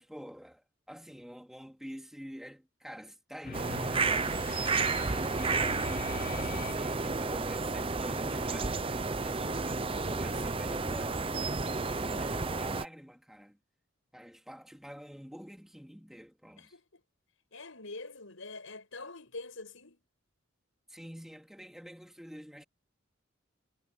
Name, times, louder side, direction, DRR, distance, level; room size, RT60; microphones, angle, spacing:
voice 1, 0.0-13.6 14.1-16.7 20.9-22.6, equal, ahead, 2.5 m, -48 dB
sound 1, 3.4-7.3, left 5 dB, 45° left, 0.5 m, -43 dB
sound 2, 3.5-12.8, right 4 dB, 25° right, 0.8 m, -31 dB
voice 2, 16.6-17.0 17.5-20.0, left 3 dB, 80° left, 5.6 m, -45 dB
head